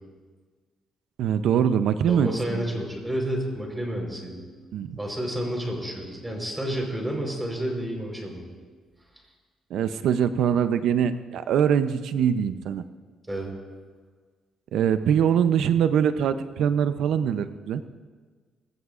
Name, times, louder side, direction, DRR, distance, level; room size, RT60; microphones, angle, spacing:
voice 1, 1.2-2.6 4.7-5.0 9.7-12.8 14.7-17.8, right 8 dB, 80° right, 11 dB, 0.7 m, -23 dB
voice 2, 2.1-4.4 5.0-8.5 13.3-13.5, right 1 dB, 10° right, 0 dB, 4.3 m, -30 dB
20.5 x 16.5 x 2.5 m, 1.5 s
cardioid pair, 90°, 0 cm